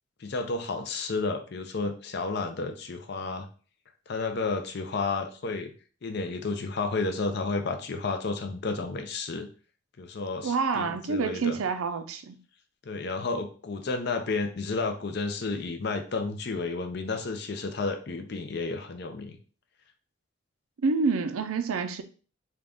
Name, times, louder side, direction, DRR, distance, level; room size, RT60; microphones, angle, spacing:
voice 1, 0.2-3.5 4.1-5.7 6.0-9.5 10.0-11.6 12.9-19.4, left 3 dB, 50° left, 0.5 m, -31 dB
voice 2, 10.4-12.4 20.8-22.0, right 4 dB, 85° right, 0.4 m, -27 dB
3.7 x 2.3 x 3.5 m
head